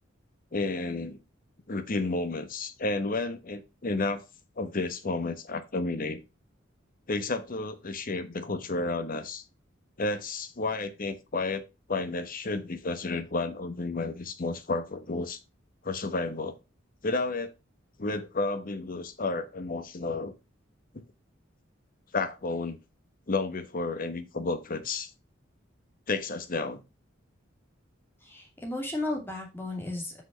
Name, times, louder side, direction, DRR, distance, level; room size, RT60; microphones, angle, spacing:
voice 1, 0.5-1.2 1.7-4.2 4.6-6.2 7.1-9.4 10.0-11.6 11.9-15.4 15.8-16.5 17.0-17.5 18.0-20.3 20.9-21.0 22.1-22.8 23.3-25.1 26.1-26.8, left 3 dB, 45° left, 1.0 m, -31 dB
voice 2, 28.2-30.2, left 2 dB, 10° left, 2.4 m, -34 dB
6.2 x 5.3 x 5.6 m
head